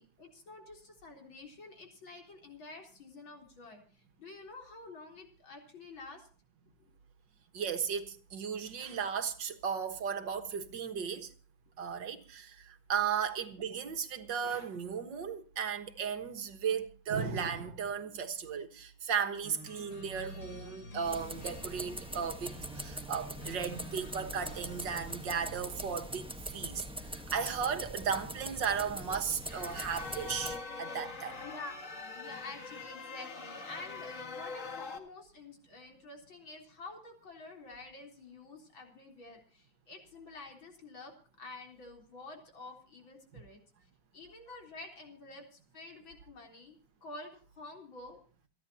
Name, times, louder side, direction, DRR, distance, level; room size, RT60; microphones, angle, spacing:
voice 1, 0.0-6.3 6.8-6.9 13.0-13.1 31.4-31.8 32.1-43.6 44.1-48.2, left 3 dB, 90° left, 4.5 m, -49 dB
voice 2, 7.5-11.3 11.8-31.4, right 7 dB, 65° right, 2.1 m, -35 dB
sound 1, 19.4-26.1, equal, 70° left, 5.0 m, -49 dB
sound 2, 21.0-30.6, right 1 dB, 5° right, 0.9 m, -42 dB
sound 3, 29.4-35.0, left 4 dB, 40° left, 2.1 m, -43 dB
28.0 x 10.5 x 2.8 m
omnidirectional pair, 2.1 m